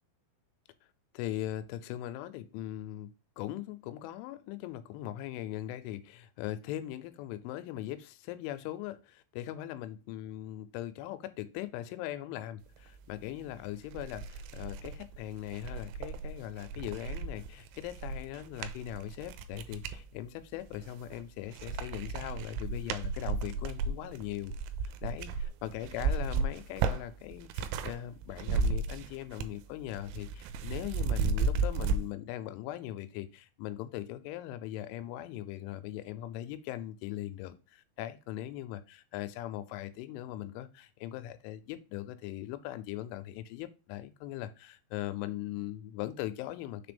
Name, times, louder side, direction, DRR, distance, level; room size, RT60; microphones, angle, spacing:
voice 1, 1.1-24.5 25.0-46.9, left 13 dB, 90° left, 3.1 m, -40 dB
sound 1, 13.4-13.5 13.9-20.0 20.6-21.2 21.5-28.0 28.2-29.6 29.9-32.0, right 4 dB, 85° right, 3.1 m, -34 dB
6.7 x 3.4 x 5.2 m
omnidirectional pair, 5.4 m